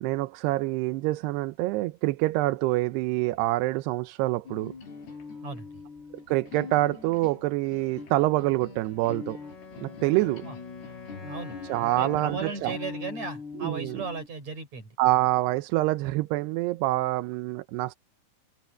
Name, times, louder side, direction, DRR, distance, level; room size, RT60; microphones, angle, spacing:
voice 1, 0.0-4.7 6.3-9.4 9.8-10.4 11.6-12.8 13.6-14.0 15.0-17.9, right 18 dB, 85° right, 2.8 m, -26 dB
sound 1, 4.5-14.3, left 4 dB, 80° left, 8.5 m, -42 dB
voice 2, 5.4-5.8 10.4-10.5 11.2-11.6 11.8-14.9, right 4 dB, 40° right, 5.9 m, -36 dB
Wind instrument woodwind instrument, 9.4-13.3, left 5 dB, 35° left, 5.4 m, -47 dB
omnidirectional pair, 4.7 m